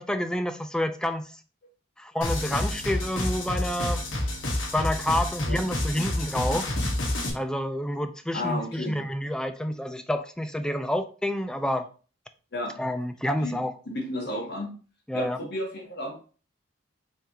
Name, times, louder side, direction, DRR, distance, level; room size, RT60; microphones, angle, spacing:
voice 1, 0.0-1.3 2.0-4.0 4.7-6.7 7.3-11.9 12.8-13.8 15.1-15.4, left 1 dB, 5° left, 0.3 m, -28 dB
sound 1, 2.2-7.3, left 1 dB, 85° left, 1.2 m, -29 dB
voice 2, 8.3-9.0 12.5-12.7 13.4-13.6 13.8-14.7 15.1-16.1, left 1 dB, 55° left, 1.4 m, -32 dB
5.5 x 3.3 x 2.9 m
head